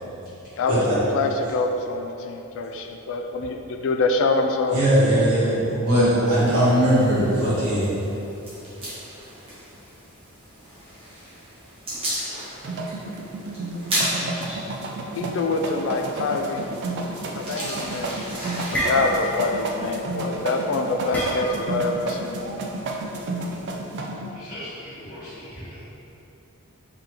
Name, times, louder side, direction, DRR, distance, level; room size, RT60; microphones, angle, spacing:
voice 1, 0.6-4.8 15.1-16.6 17.3-18.3 18.7-22.4, left 3 dB, 60° left, 4 dB, 0.3 m, -25 dB
voice 2, 4.7-7.9, right 1 dB, 80° right, -10 dB, 1.4 m, -19 dB
sound 1, 6.3-19.3, right 1 dB, 25° right, 1.2 m, -35 dB
sound 2, 12.6-24.3, right 2 dB, 50° right, 0.3 m, -31 dB
voice 3, 14.3-14.9 22.5-23.2 23.9-24.0 24.3-25.8, equal, 45° left, -14 dB, 1.3 m, -41 dB
sound 3, 18.1-18.2 18.5-19.6 19.8-20.1 21.1-21.8, equal, 5° left, 0.6 m, -28 dB
3.6 x 3.4 x 2.9 m, 2.9 s
head